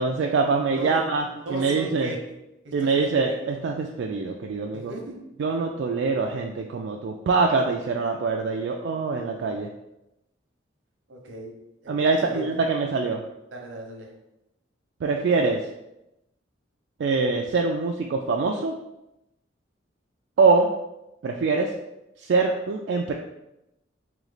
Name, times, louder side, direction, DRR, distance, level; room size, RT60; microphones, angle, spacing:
voice 1, 0.0-2.1 2.7-4.9 5.4-9.7 11.9-13.2 15.0-15.6 17.0-18.7 20.4-20.7 21.2-21.7 22.2-23.1, right 4 dB, 65° right, 1 dB, 0.3 m, -24 dB
voice 2, 0.7-1.0 1.3-2.2 2.6-3.5 4.7-5.2 11.1-11.6 11.8-12.0 12.2-12.7 13.5-14.1, right 1 dB, 85° right, 1 dB, 0.9 m, -37 dB
3.1 x 2.9 x 3.9 m, 0.91 s
head